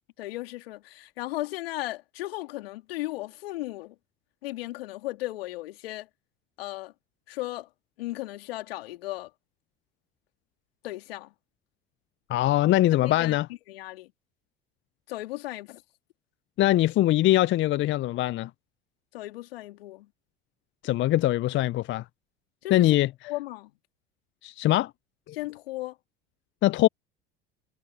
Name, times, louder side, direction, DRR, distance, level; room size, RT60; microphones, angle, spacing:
voice 1, 0.2-3.9 4.4-6.1 6.6-6.9 7.3-7.7 8.0-9.3 10.8-11.3 13.0-13.4 13.7-14.1 15.1-15.8 19.1-20.1 22.6-23.0 23.2-23.7 25.3-26.0, left 18 dB, 75° left, 3.2 m, -36 dB
voice 2, 12.3-13.5 16.6-18.5 20.8-22.0 22.7-23.1 24.4-24.9 25.3-25.4 26.6-26.9, left 15 dB, 40° left, 0.6 m, -22 dB
hypercardioid pair, 70°, 30 cm